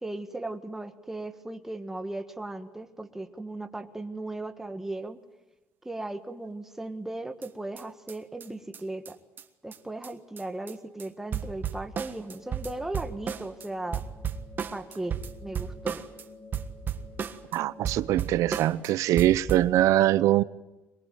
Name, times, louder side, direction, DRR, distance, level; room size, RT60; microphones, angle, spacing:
voice 1, 0.0-5.2 5.8-9.2 9.6-14.0 14.7-15.2 15.4-16.0, right 2 dB, 5° right, 1.5 m, -37 dB
sound 1, 7.4-7.5 7.8-7.9 8.1-8.2 8.4-8.5 8.7-8.8 9.1-9.2 9.4-9.5 9.7-9.8 10.0-10.1 10.4-10.7 11.0-11.1 11.3-13.7 13.9-16.2 16.5-17.6 17.8-18.9 19.2-19.7, right 7 dB, 40° right, 1.5 m, -34 dB
sound 2, 12.1-18.8, left 1 dB, 75° left, 6.5 m, -51 dB
voice 2, 17.5-20.4, right 14 dB, 80° right, 0.7 m, -23 dB
23.0 x 21.5 x 9.2 m
cardioid pair, 150°, 5 cm